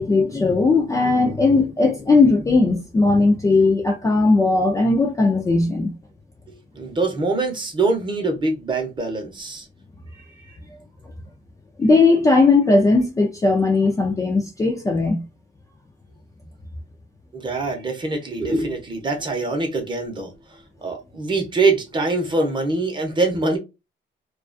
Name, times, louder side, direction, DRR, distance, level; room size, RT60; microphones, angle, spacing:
voice 1, 0.0-5.9 11.8-15.2, left 3 dB, 15° left, 0.3 m, -18 dB
voice 2, 6.7-9.7 10.4-10.5 17.3-23.6, right 3 dB, 25° right, 0.7 m, -24 dB
2.4 x 2.3 x 2.3 m
cardioid pair, 165°, 20 cm